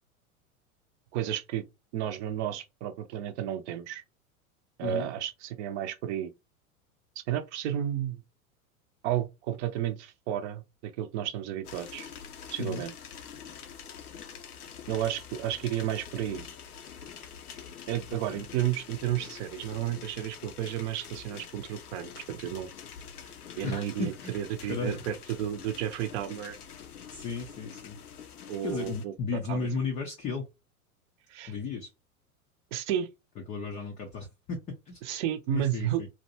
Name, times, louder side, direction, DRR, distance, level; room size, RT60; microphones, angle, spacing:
voice 1, 1.1-1.6 1.9-4.0 4.8-6.3 7.3-8.2 9.0-12.1 12.5-12.9 14.9-16.5 17.9-22.7 23.2-26.6 28.5-29.1 29.5-29.6 31.3-31.5 32.7-33.1 35.0-36.0, right 11 dB, 50° right, 0.6 m, -32 dB
sound 1, 11.6-29.1, left 7 dB, 90° left, 0.6 m, -46 dB
voice 2, 18.1-18.4 23.6-24.4 24.7-25.1 27.1-28.0 28.6-30.5 31.4-31.9 33.5-35.0 35.5-36.1, left 4 dB, 20° left, 0.3 m, -34 dB
2.6 x 2.1 x 2.7 m
hypercardioid pair, 90°, 44 cm